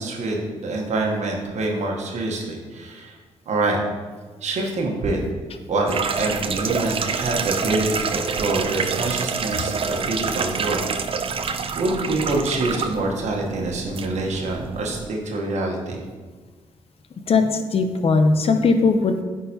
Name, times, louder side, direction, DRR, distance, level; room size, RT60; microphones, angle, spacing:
voice 1, 0.0-3.1 3.5-3.8 4.4-5.2 5.7-10.9 11.3-16.0, right 2 dB, 65° right, 1 dB, 1.1 m, -26 dB
sound 1, 5.9-15.1, right 5 dB, 45° right, 0.5 m, -27 dB
voice 2, 17.3-19.2, left 4 dB, 50° left, 7 dB, 0.6 m, -19 dB
9.4 x 3.8 x 2.8 m, 1.4 s
supercardioid pair, 60°, 13 cm